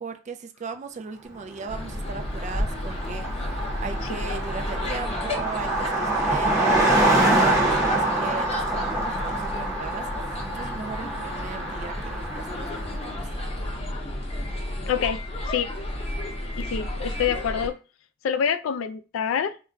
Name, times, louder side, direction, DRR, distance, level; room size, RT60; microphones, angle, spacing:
voice 1, 0.0-13.5, right 4 dB, 35° right, 0.3 m, -38 dB
sound 1, 1.2-15.5, equal, 60° right, 1.0 m, -47 dB
sound 2, 1.7-17.7, left 1 dB, 30° left, 0.6 m, -32 dB
Car passing by, 1.9-2.0 2.2-13.2, right 1 dB, 15° right, 0.7 m, -26 dB
voice 2, 14.9-15.2 15.5-15.7 16.6-17.8 18.2-19.6, left 8 dB, 80° left, 0.3 m, -26 dB
2.4 x 2.1 x 3.8 m
head